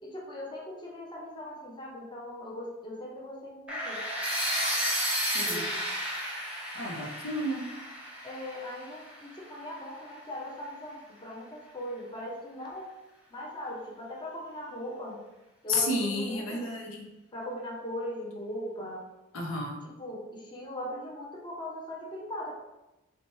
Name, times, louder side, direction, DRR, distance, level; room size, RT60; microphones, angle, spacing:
voice 1, 0.0-4.0 5.3-5.8 8.2-12.9 13.3-15.2 15.6-16.7 17.3-19.1 19.8-22.5, equal, 20° left, -2 dB, 0.7 m, -39 dB
sound 1, 3.7-9.6, equal, 5° right, 0.9 m, -32 dB
voice 2, 5.3-5.6 6.7-7.7 15.7-17.1 19.3-19.9, left 2 dB, 85° left, 1 dB, 0.7 m, -32 dB
5.6 x 2.2 x 3.1 m, 0.98 s
head